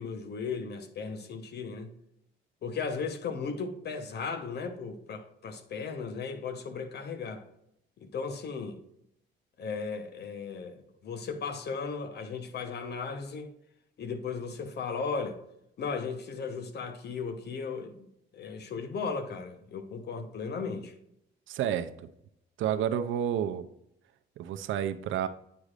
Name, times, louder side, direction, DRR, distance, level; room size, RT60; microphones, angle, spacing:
voice 1, 0.0-1.9 2.6-7.4 8.0-8.8 9.6-10.8 11.0-13.5 14.0-15.4 15.8-18.1 18.3-20.9, left 5 dB, 55° left, 0.9 m, -36 dB
voice 2, 21.5-21.9 22.6-23.7 24.4-25.3, right 9 dB, 80° right, 0.5 m, -30 dB
9.2 x 4.8 x 2.5 m
cardioid pair, 90°, 20 cm